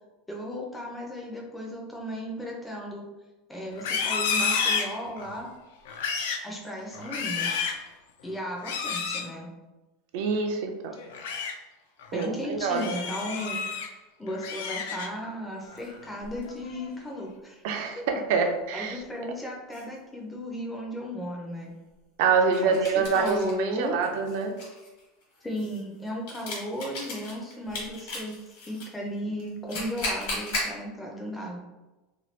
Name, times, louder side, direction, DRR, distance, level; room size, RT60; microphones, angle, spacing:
voice 1, 0.3-3.0 3.5-5.5 6.4-7.7 8.2-9.5 12.1-13.6 14.2-17.7 18.0-18.1 18.7-21.8 22.6-22.8 23.1-24.0 25.4-28.4 28.6-31.6, equal, 5° left, -1 dB, 0.4 m, -35 dB
Livestock farm animals working animals, 3.7-5.4 5.9-6.5 6.9-7.9 8.6-9.3 11.0-11.5 12.0-12.3 12.7-13.9 14.3-15.3 15.7-16.0 16.5-16.9, left 5 dB, 80° left, 0.3 m, -30 dB
voice 2, 10.1-10.9 12.1-12.9 17.6-19.0 22.2-24.5, right 5 dB, 55° right, 5 dB, 0.4 m, -26 dB
sound 1, 15.8-16.4 18.9-19.0 19.7-19.9 22.5-23.6 24.0-28.9 29.4-30.7, left 2 dB, 65° left, 1.2 m, -36 dB
2.8 x 2.2 x 3.1 m, 1.1 s
supercardioid pair, 175°, 0 cm